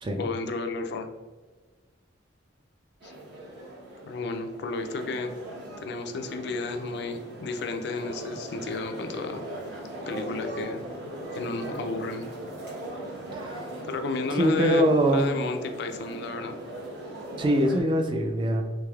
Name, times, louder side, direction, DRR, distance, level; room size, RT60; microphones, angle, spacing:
voice 1, 0.2-1.1 3.0-3.1 4.1-5.3 5.8-9.4 10.1-10.8 11.3-12.2 13.8-16.6, left 3 dB, 60° left, 6 dB, 0.4 m, -32 dB
sound 1, 3.0-17.8, right 1 dB, 60° right, 1.0 m, -39 dB
voice 2, 14.3-15.3 17.4-18.6, equal, 25° right, 3 dB, 0.3 m, -23 dB
3.3 x 3.2 x 2.3 m, 1.3 s
head